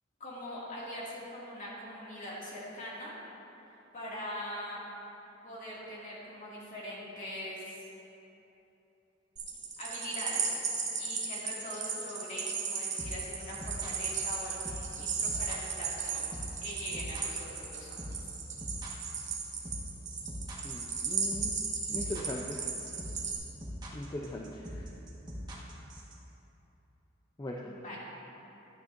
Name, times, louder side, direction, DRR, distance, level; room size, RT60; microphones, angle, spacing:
voice 1, 0.2-3.1 3.9-4.8 5.4-7.8 9.8-10.6 11.0-16.3 16.6-18.3 27.6-28.0, left 1 dB, 40° left, -6 dB, 2.2 m, -42 dB
sound 1, 9.4-23.4, right 5 dB, 40° right, 1.1 m, -35 dB
sound 2, 13.0-26.1, equal, 20° right, 1.4 m, -42 dB
voice 2, 20.6-21.6 21.9-22.6 23.9-24.8 27.4-27.6, left 1 dB, 20° left, -1 dB, 0.5 m, -39 dB
12.5 x 9.1 x 2.6 m, 3.0 s
head